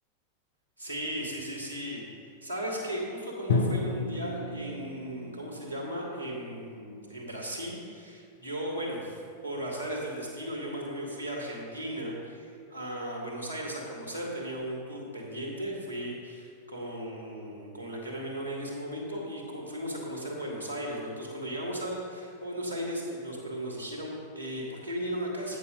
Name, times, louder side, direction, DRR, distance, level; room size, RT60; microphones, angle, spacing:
voice 1, 0.8-2.0 2.4-9.2 9.4-25.6, equal, 85° left, -2 dB, 2.0 m, -36 dB
Drum, 3.5-7.5, left 3 dB, 65° left, 0.9 m, -33 dB
8.5 x 6.6 x 5.3 m, 2.2 s
figure-of-eight pair, 90°, 0 cm